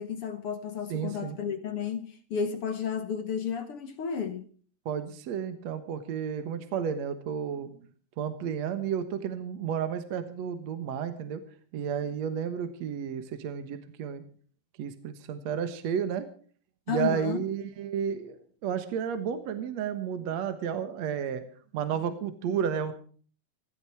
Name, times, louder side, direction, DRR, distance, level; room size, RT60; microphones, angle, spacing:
voice 1, 0.0-4.5 16.9-17.4, left 7 dB, 60° left, 1.6 m, -32 dB
voice 2, 0.9-1.4 4.9-7.7 8.2-11.4 11.7-14.2 14.8-16.3 16.9-21.4 21.7-22.9, right 8 dB, 60° right, 2.3 m, -32 dB
16.5 x 16.0 x 4.6 m
omnidirectional pair, 3.9 m